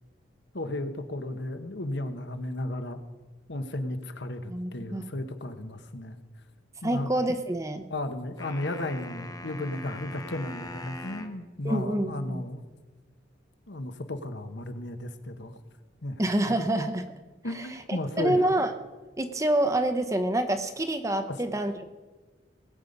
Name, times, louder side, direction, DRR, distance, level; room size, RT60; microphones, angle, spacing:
voice 1, 0.5-3.0 3.5-6.2 6.8-7.2 7.9-12.6 13.7-15.6 16.0-16.2 16.5-16.6 17.4-18.4 21.2-21.4, left 1 dB, 65° left, 8 dB, 1.1 m, -34 dB
voice 2, 4.5-5.0 6.8-7.9 11.6-12.4 16.2-17.1 17.5-17.6 17.9-18.7 19.2-21.9, right 1 dB, 15° right, 8 dB, 0.7 m, -27 dB
sound 1, 8.4-11.4, left 2 dB, 20° left, 0.8 m, -41 dB
19.0 x 8.5 x 5.3 m, 1.2 s
head